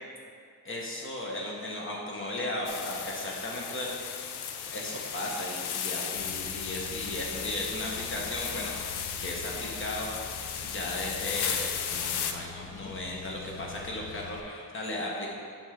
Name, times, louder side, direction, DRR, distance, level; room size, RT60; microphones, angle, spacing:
voice 1, 0.6-3.9 4.7-8.8 9.2-10.1 10.6-15.3, left 1 dB, 30° left, -2 dB, 1.3 m, -36 dB
sound 1, 2.7-12.3, left 8 dB, 90° left, 0.6 m, -35 dB
Car, 6.2-14.4, left 5 dB, 50° left, 0.6 m, -46 dB
7.9 x 3.7 x 5.9 m, 2.2 s
wide cardioid pair, 155°, 38 cm